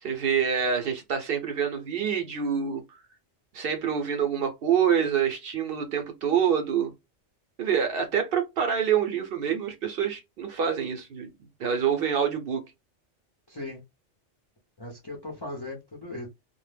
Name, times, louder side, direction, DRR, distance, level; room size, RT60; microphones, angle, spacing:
voice 1, 0.0-2.8 3.5-6.9 7.6-11.3 11.6-12.6, right 7 dB, 65° right, 0.7 m, -26 dB
voice 2, 13.5-13.8 14.8-16.3, left 2 dB, 40° left, 0.3 m, -38 dB
2.1 x 2.0 x 3.2 m
omnidirectional pair, 1.2 m